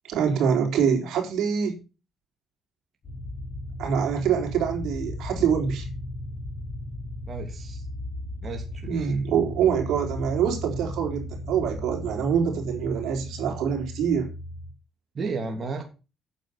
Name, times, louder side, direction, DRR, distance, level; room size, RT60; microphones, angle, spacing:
voice 1, 0.0-1.8 3.8-5.9 8.8-14.3, right 7 dB, 85° right, 2 dB, 3.8 m, -25 dB
sound 1, 3.0-14.7, left 1 dB, 50° left, 4.5 m, -36 dB
voice 2, 7.3-7.8 8.4-9.1 15.1-15.8, right 3 dB, 45° right, 2 dB, 3.0 m, -33 dB
9.0 x 7.5 x 6.8 m, 0.32 s
cardioid pair, 90°, 0 cm